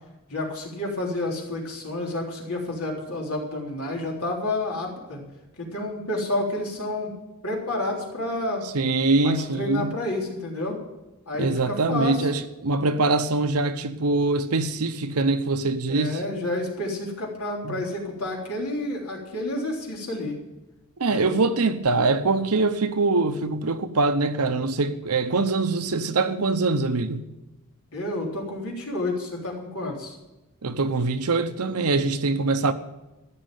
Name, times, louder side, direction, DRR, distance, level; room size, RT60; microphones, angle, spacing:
voice 1, 0.3-5.2 5.6-7.1 7.4-8.6 9.2-10.8 11.3-12.3 15.9-20.4 21.1-21.3 27.9-30.2, left 1 dB, 80° left, 3.5 m, -30 dB
voice 2, 8.7-9.9 11.4-16.2 17.6-17.8 21.0-27.3 30.6-32.7, right 3 dB, 85° right, 0.9 m, -23 dB
14.5 x 6.6 x 9.0 m
head